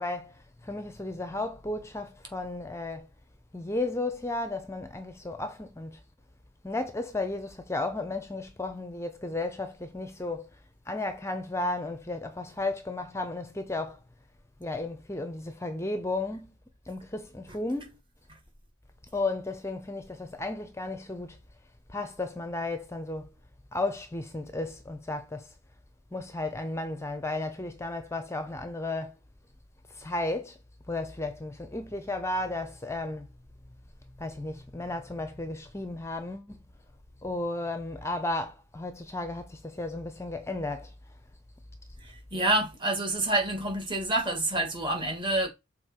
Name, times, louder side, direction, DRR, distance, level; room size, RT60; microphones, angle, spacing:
voice 1, 0.0-3.1 3.5-6.0 6.6-10.5 10.9-14.0 14.6-16.5 16.9-18.0 19.1-21.4 21.9-23.3 23.7-25.5 26.1-29.1 29.9-30.6 30.9-33.3 34.2-36.6 37.2-40.9, left 2 dB, 15° left, 0.7 m, -34 dB
voice 2, 42.0-45.5, right 2 dB, 25° right, 1.8 m, -28 dB
6.5 x 4.3 x 4.4 m
head